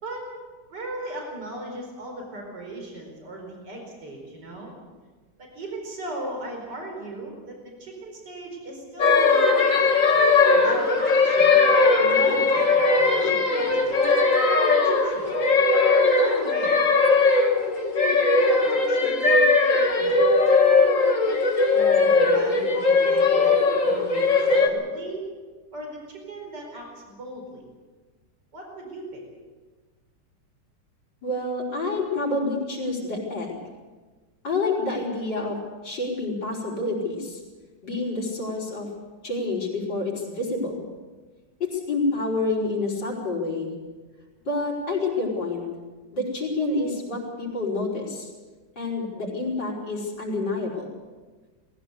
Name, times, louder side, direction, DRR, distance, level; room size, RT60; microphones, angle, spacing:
voice 1, 0.7-4.7 5.4-9.9 10.5-11.6 12.0-14.2 14.7-15.4 16.2-16.8 18.1-18.6 18.9-19.3 20.0-20.2 21.7-23.5 23.8-25.3 25.7-27.6 28.5-29.2, right 2 dB, 65° right, 1 dB, 5.2 m, -38 dB
sound 1, 9.0-24.7, left 3 dB, 45° left, 2.2 m, -19 dB
voice 2, 31.2-33.6 34.4-35.6 35.8-37.4 37.8-38.9 39.2-40.8 41.6-43.7 44.5-45.6 46.1-48.3 48.8-50.9, left 2 dB, 70° left, -2 dB, 5.5 m, -28 dB
20.0 x 16.5 x 8.4 m, 1.4 s
omnidirectional pair, 2.0 m